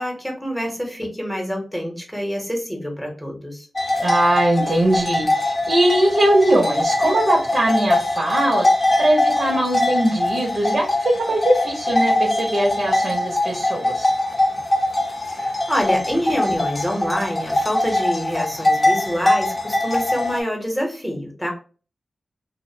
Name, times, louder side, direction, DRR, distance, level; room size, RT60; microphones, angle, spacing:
voice 1, 0.0-3.7 15.2-21.5, equal, ahead, 1 dB, 0.9 m, -26 dB
sound 1, 3.8-20.4, left 1 dB, 30° left, 0.6 m, -22 dB
voice 2, 4.0-8.7 9.0-14.1, right 1 dB, 60° right, -2 dB, 0.8 m, -20 dB
2.5 x 2.1 x 2.6 m, 0.37 s
cardioid pair, 60°, 0 cm